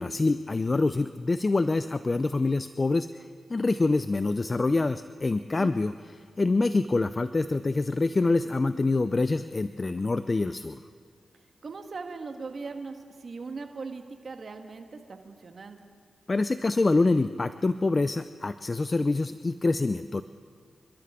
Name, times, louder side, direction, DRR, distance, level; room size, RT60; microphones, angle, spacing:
voice 1, 0.0-5.9 6.4-10.8 16.3-20.2, left 3 dB, 40° left, 12 dB, 0.5 m, -26 dB
voice 2, 11.6-15.8, right 4 dB, 60° right, 5 dB, 1.6 m, -39 dB
28.0 x 12.5 x 3.8 m, 2.2 s
cardioid pair, 50°, 0 cm